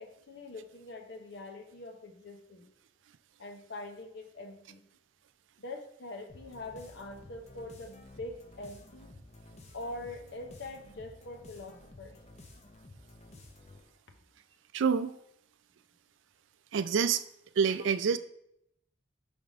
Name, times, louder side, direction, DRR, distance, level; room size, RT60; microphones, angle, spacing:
voice 1, 0.0-2.7 3.4-4.8 5.6-9.2 9.7-12.2, left 2 dB, 65° left, 4 dB, 0.9 m, -44 dB
sound 1, 6.3-14.0, left 2 dB, 35° left, 0.7 m, -53 dB
voice 2, 14.7-15.2 16.7-17.2 17.6-18.2, right 6 dB, 70° right, 12 dB, 0.4 m, -27 dB
5.4 x 3.4 x 5.2 m, 0.75 s
head